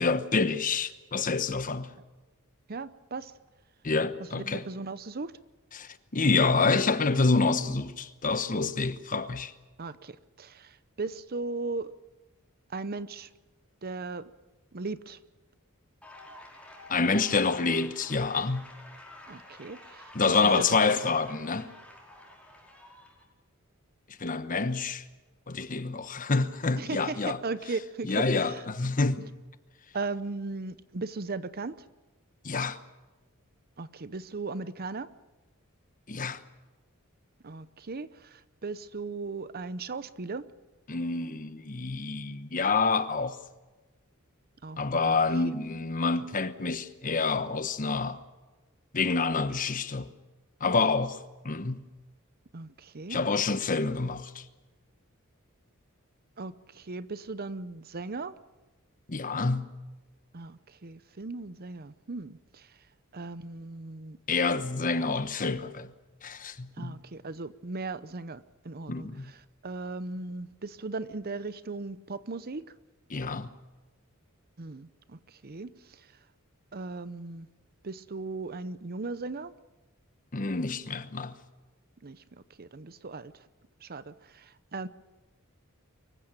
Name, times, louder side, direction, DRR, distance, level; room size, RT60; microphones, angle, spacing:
voice 1, 0.0-1.9 3.8-4.6 5.7-9.5 16.9-18.7 20.1-21.7 24.2-25.0 25.5-27.4 28.0-29.3 32.4-32.8 36.1-36.4 40.9-43.4 44.8-48.2 48.9-50.1 50.6-51.8 53.1-54.4 59.1-59.7 64.3-65.9 66.2-67.0 68.9-69.3 73.1-73.5 80.3-81.4, left 4 dB, 40° left, 1.1 m, -27 dB
voice 2, 2.7-3.3 4.3-5.3 9.8-11.9 12.7-13.3 13.8-14.3 14.7-15.2 19.3-20.9 26.8-28.6 29.9-31.8 33.8-35.1 37.4-40.5 44.6-45.2 45.4-45.5 52.5-53.2 56.4-58.3 60.3-62.7 63.1-64.2 66.8-72.7 74.6-76.1 76.7-77.5 77.8-79.5 82.0-82.2 82.6-83.5 83.8-84.9, right 3 dB, 45° right, 0.8 m, -37 dB
sound 1, 16.0-23.2, left 1 dB, 5° left, 5.1 m, -50 dB
24.5 x 15.5 x 8.8 m
head